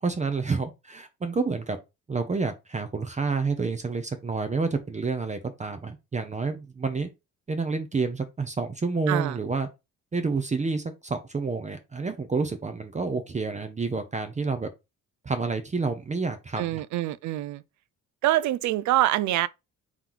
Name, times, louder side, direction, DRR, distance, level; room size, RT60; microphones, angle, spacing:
voice 1, 0.0-1.8 2.1-7.1 7.5-9.7 10.1-14.7 15.2-16.8, right 4 dB, 25° right, 0.7 m, -29 dB
voice 2, 9.1-9.4 16.6-17.6 18.2-19.5, right 14 dB, 70° right, 0.4 m, -25 dB
3.6 x 3.0 x 3.8 m
cardioid pair, 90°, 30 cm